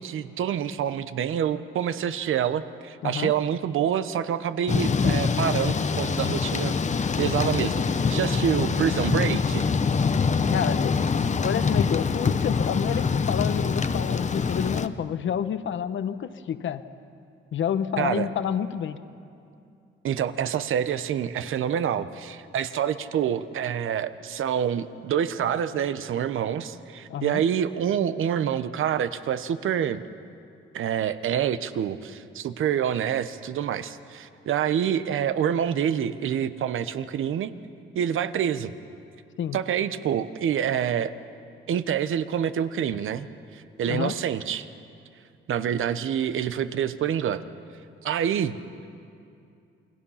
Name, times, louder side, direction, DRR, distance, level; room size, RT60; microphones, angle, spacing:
voice 1, 0.0-6.7 7.2-9.7 18.0-18.3 20.0-30.0 30.7-37.5 37.9-38.7 39.5-41.1 41.7-43.3 43.5-44.7 45.5-47.4 48.0-48.6, right 9 dB, 75° right, 12 dB, 1.0 m, -27 dB
voice 2, 3.0-3.3 10.5-16.8 17.5-19.0 27.1-27.4 39.4-39.6 43.9-44.2, left 8 dB, 65° left, 11 dB, 1.0 m, -29 dB
Thunder / Rain, 4.7-14.9, left 5 dB, 35° left, 0.8 m, -24 dB
29.0 x 21.0 x 5.7 m, 2.5 s
cardioid pair, 90°, 21 cm